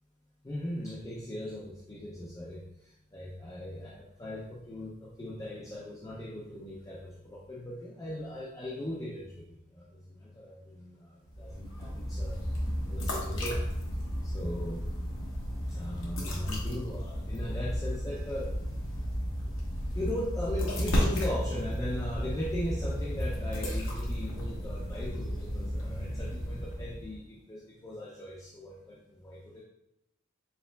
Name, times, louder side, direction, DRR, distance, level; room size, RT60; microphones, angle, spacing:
voice 1, 0.4-12.5 12.8-13.6 14.2-14.8 15.7-18.6 19.9-29.6, left 1 dB, 15° left, -4 dB, 0.5 m, -39 dB
sound 1, 11.3-27.2, equal, 70° left, 1.1 m, -33 dB
4.6 x 4.0 x 2.3 m, 0.86 s
head